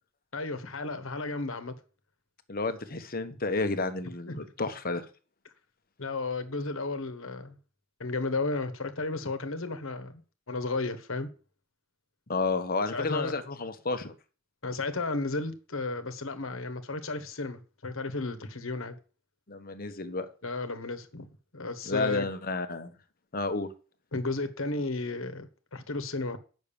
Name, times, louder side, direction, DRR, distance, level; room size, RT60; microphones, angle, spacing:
voice 1, 0.3-1.7 4.3-4.5 6.0-7.6 8.0-10.2 10.5-11.3 12.9-13.3 14.6-19.0 20.4-22.3 24.1-26.4, left 3 dB, 70° left, 1.4 m, -33 dB
voice 2, 2.5-5.1 12.3-14.1 19.5-20.3 21.9-23.0 23.3-23.7, left 3 dB, 45° left, 1.2 m, -31 dB
8.7 x 6.4 x 7.0 m
head